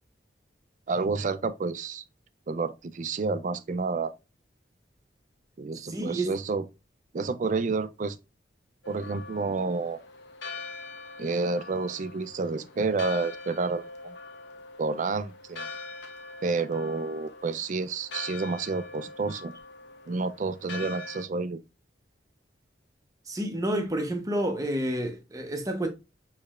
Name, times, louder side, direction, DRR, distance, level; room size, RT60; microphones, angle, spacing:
voice 1, 0.9-2.0 2.5-4.1 5.6-6.7 7.1-8.2 8.9-10.0 11.2-14.2 14.8-15.7 16.4-19.5 20.1-21.6, right 3 dB, 40° right, 0.3 m, -29 dB
voice 2, 5.9-6.3 23.3-25.9, right 1 dB, 20° right, 0.7 m, -29 dB
Church bell, 8.8-21.2, left 3 dB, 75° left, 0.8 m, -43 dB
6.4 x 3.2 x 2.4 m
head